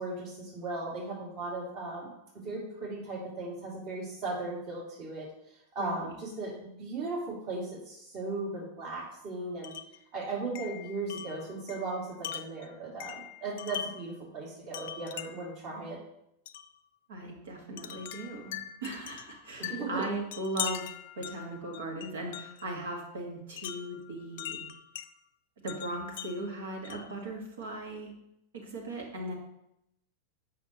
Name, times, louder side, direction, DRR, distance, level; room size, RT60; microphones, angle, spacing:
voice 1, 0.0-2.1 2.4-5.3 5.7-9.7 10.1-16.0 19.6-20.0, right 3 dB, 40° right, -3 dB, 2.5 m, -37 dB
voice 2, 5.8-6.1 17.1-20.9 21.1-24.7 25.6-28.1 28.5-29.3, right 1 dB, 65° right, 0 dB, 1.7 m, -38 dB
Wind chime, 9.6-10.0 10.6-14.1 14.7-15.6 16.5-16.7 17.8-22.7 23.6-25.1 25.7-27.2, left 11 dB, 55° left, 0.3 m, -41 dB
7.5 x 5.7 x 3.0 m, 0.81 s
figure-of-eight pair, 90°, 0 cm